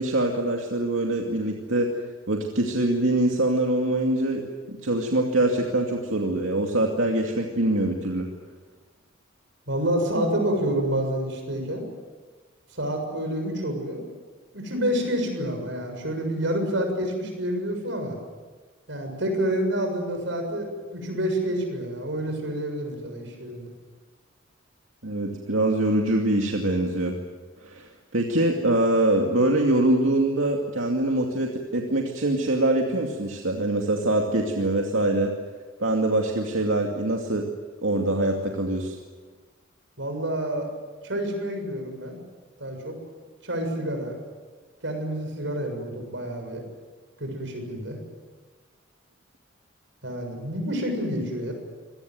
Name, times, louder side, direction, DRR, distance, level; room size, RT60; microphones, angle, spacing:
voice 1, 0.0-1.9 2.3-4.4 4.7-8.3 25.0-27.2 27.6-35.3 35.8-37.4 37.8-39.0, right 1 dB, 85° right, 1 dB, 2.4 m, -24 dB
voice 2, 9.7-11.9 12.7-14.1 14.5-18.2 18.9-20.7 20.9-23.7 40.0-40.7 41.0-42.2 42.6-43.0 43.4-44.2 44.8-46.6 47.2-48.0 50.0-51.5, right 1 dB, 65° right, 4 dB, 7.0 m, -28 dB
26.0 x 18.5 x 9.4 m, 1.4 s
head